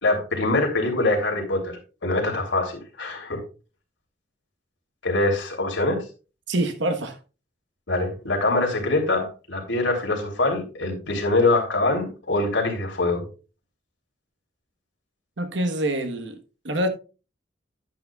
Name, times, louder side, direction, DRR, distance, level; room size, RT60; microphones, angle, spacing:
voice 1, 0.0-1.7 2.0-3.4 5.0-6.0 7.9-13.2, left 2 dB, 80° left, 3.1 m, -24 dB
voice 2, 6.5-7.2 15.4-16.4 16.6-16.9, right 1 dB, 70° right, 1.3 m, -25 dB
10.5 x 8.8 x 2.4 m
head